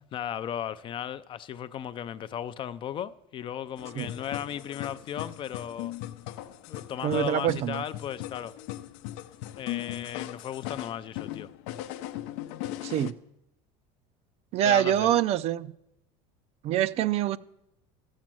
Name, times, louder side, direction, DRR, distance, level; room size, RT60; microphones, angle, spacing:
voice 1, 0.1-5.9 6.7-8.5 9.6-11.5 14.7-15.1, left 9 dB, 35° left, 0.4 m, -36 dB
sound 1, 3.8-13.1, left 14 dB, 75° left, 0.6 m, -38 dB
voice 2, 7.0-7.8 12.8-13.1 14.5-15.7 16.6-17.4, right 11 dB, 45° right, 0.4 m, -25 dB
13.5 x 7.3 x 7.6 m
cardioid pair, 140°, 15 cm